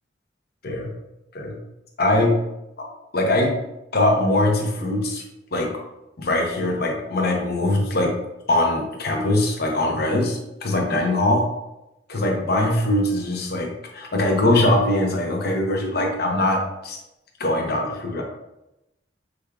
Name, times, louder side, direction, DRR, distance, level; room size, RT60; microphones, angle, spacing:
voice 1, 2.0-2.4 3.1-3.6 3.9-5.2 5.5-5.7 6.2-8.1 8.5-11.4 12.1-17.0 17.4-18.2, left 1 dB, 60° left, 1 dB, 0.9 m, -22 dB
6.2 x 3.4 x 2.4 m, 0.91 s
head